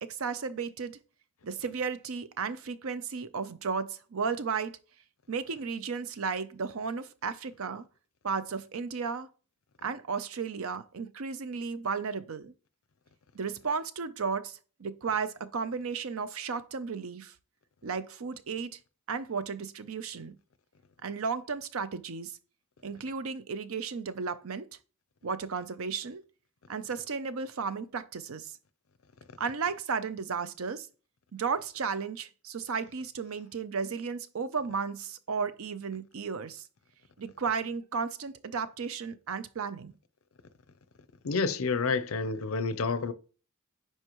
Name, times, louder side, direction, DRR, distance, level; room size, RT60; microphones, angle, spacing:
voice 1, 0.0-1.0 1.4-4.8 5.3-7.8 8.2-9.3 9.8-12.5 13.3-17.3 17.8-18.8 19.1-20.4 21.0-22.4 22.8-24.7 25.2-26.2 26.7-28.6 29.4-30.9 31.3-36.6 37.2-39.9, right 5 dB, 70° right, 0.6 m, -34 dB
voice 2, 41.2-43.1, left 4 dB, 70° left, 0.6 m, -29 dB
9.8 x 4.6 x 3.0 m
head